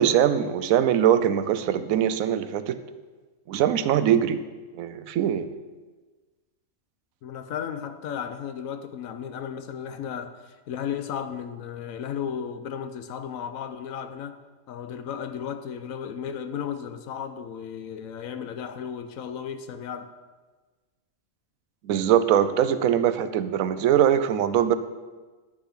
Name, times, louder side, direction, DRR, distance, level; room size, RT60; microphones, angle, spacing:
voice 1, 0.0-2.8 3.5-4.4 4.7-5.6 21.8-24.7, right 10 dB, 80° right, 1.0 m, -22 dB
voice 2, 7.2-14.4 14.7-20.1, left 8 dB, 85° left, 1.1 m, -34 dB
10.5 x 6.4 x 5.8 m
omnidirectional pair, 1.4 m